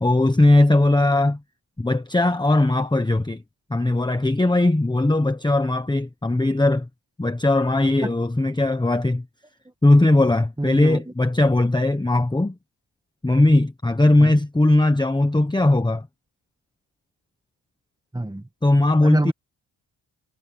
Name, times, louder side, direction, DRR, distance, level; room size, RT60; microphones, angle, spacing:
voice 1, 0.0-1.4 1.8-3.4 3.7-6.9 7.2-9.2 9.8-12.5 13.2-16.1 18.6-19.3, left 2 dB, 10° left, 1.1 m, -19 dB
voice 2, 10.6-11.0 14.2-14.4 18.1-18.5 19.0-19.3, right 1 dB, 10° right, 1.8 m, -24 dB
wide cardioid pair, 125°, 44 cm